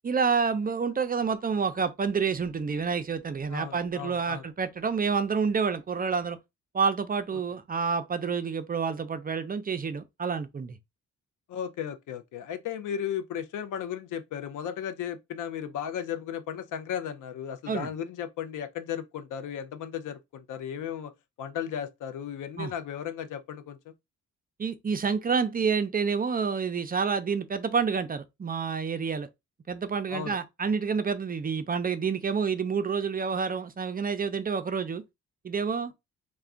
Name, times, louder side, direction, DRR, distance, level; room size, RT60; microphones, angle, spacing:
voice 1, 0.0-6.4 6.7-10.8 17.7-17.9 22.6-22.7 24.6-29.3 29.7-35.0 35.4-35.9, right 5 dB, 30° right, 0.4 m, -28 dB
voice 2, 3.5-4.4 11.5-21.1 21.4-23.9 30.1-30.4, left 9 dB, 75° left, 0.5 m, -35 dB
2.3 x 2.2 x 3.6 m
cardioid pair, 70°, 31 cm